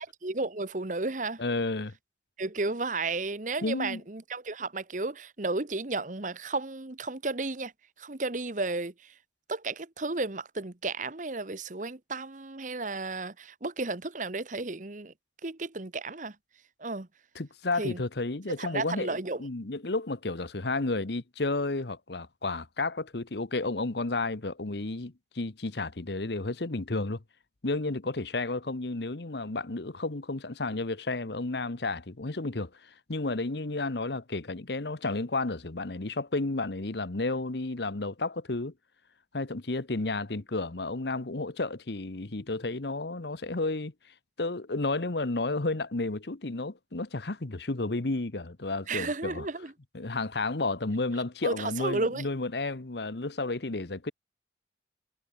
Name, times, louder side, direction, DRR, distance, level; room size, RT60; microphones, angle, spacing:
voice 1, 0.0-1.4 2.4-7.7 8.0-9.1 9.5-15.1 15.4-16.4 16.8-17.1 17.8-18.0 18.6-19.4 48.9-49.7 51.4-52.3, right 3 dB, 45° right, 1.2 m, -33 dB
voice 2, 1.4-1.9 3.6-4.0 17.3-27.2 27.6-32.7 33.1-38.7 39.3-43.9 44.4-49.5 49.9-54.1, left 2 dB, 70° left, 1.2 m, -32 dB
head